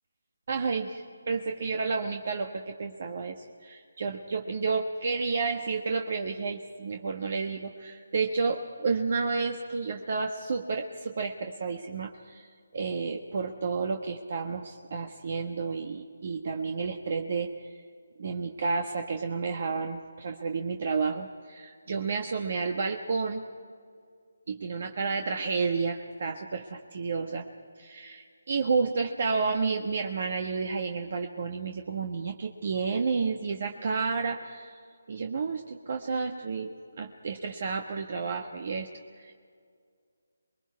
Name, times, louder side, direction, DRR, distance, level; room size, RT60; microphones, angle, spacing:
voice 1, 0.5-17.7 18.2-23.4 24.5-27.4 27.8-34.8 35.1-38.9 39.2-39.3, right 4 dB, 50° right, 4 dB, 1.3 m, -31 dB
28.0 x 21.5 x 4.8 m, 2.1 s
figure-of-eight pair, 155°, 0 cm